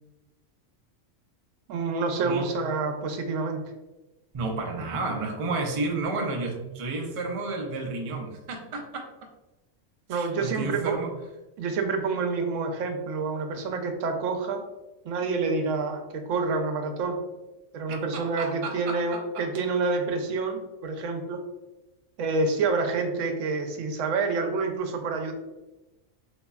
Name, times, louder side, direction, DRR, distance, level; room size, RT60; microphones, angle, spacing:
voice 1, 1.7-3.6 10.1-11.0 11.6-14.6 15.0-17.2 17.7-21.4 22.2-25.3, right 4 dB, 85° right, 5 dB, 0.9 m, -28 dB
voice 2, 4.3-9.1 10.1-11.1 18.1-19.4, right 3 dB, 50° right, 2 dB, 0.3 m, -31 dB
4.0 x 2.7 x 2.3 m, 1.0 s
omnidirectional pair, 1.3 m